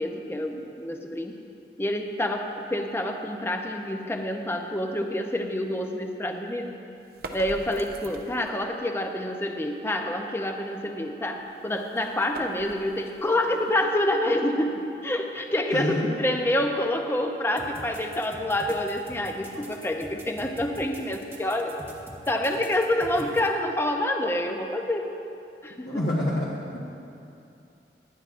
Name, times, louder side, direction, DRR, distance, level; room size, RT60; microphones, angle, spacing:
voice 1, 0.0-1.4 1.8-6.7 7.3-21.7 22.3-25.1 25.6-26.0, left 1 dB, 15° left, 3 dB, 0.6 m, -27 dB
sound 1, 7.0-8.6 11.3-14.3, right 2 dB, 55° right, 0.7 m, -44 dB
voice 2, 15.7-16.1 25.8-26.8, left 1 dB, 60° left, -6 dB, 1.3 m, -27 dB
sound 2, 17.6-23.5, right 1 dB, 15° right, 1.1 m, -44 dB
18.5 x 11.5 x 2.5 m, 2.7 s
head